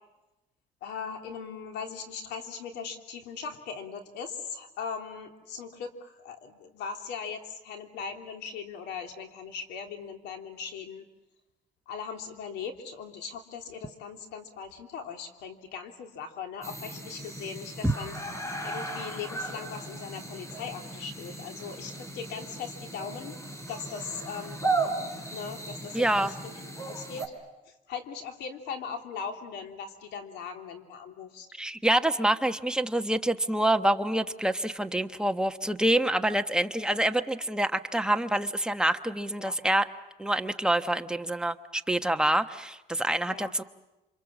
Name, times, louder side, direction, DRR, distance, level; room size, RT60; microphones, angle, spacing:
voice 1, 0.8-11.0 11.9-18.2 18.6-23.4 23.7-24.6 25.3-26.5 26.8-27.3 27.7-31.5 39.4-39.5 43.3-43.5, left 6 dB, 80° left, 4 dB, 3.3 m, -39 dB
sound 1, 16.6-27.3, right 2 dB, 15° left, 4.1 m, -36 dB
voice 2, 25.9-26.3 31.6-39.9 40.2-43.6, right 1 dB, 5° right, 7 dB, 1.1 m, -26 dB
28.5 x 26.0 x 7.3 m, 1.0 s
cardioid pair, 110°, 17 cm